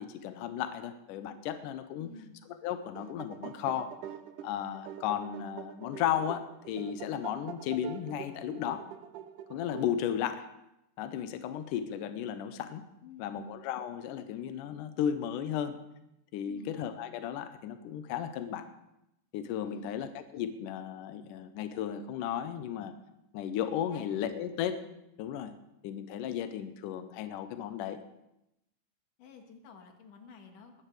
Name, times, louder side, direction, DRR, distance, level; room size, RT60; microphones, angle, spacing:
voice 1, 0.0-2.1 2.5-3.9 4.4-8.8 9.5-10.5 11.0-12.8 13.2-15.8 16.3-18.7 19.3-22.9 23.3-24.8 25.2-25.5 25.8-28.0, left 9 dB, 85° left, 9 dB, 1.9 m, -34 dB
voice 2, 2.0-2.4 13.0-13.5 16.4-16.7 19.6-20.0 23.9-24.1 29.2-30.8, left 5 dB, 60° left, 3 dB, 3.0 m, -51 dB
sound 1, 2.7-10.3, right 10 dB, 80° right, 1.8 m, -45 dB
21.0 x 14.5 x 3.3 m, 0.86 s
omnidirectional pair, 4.6 m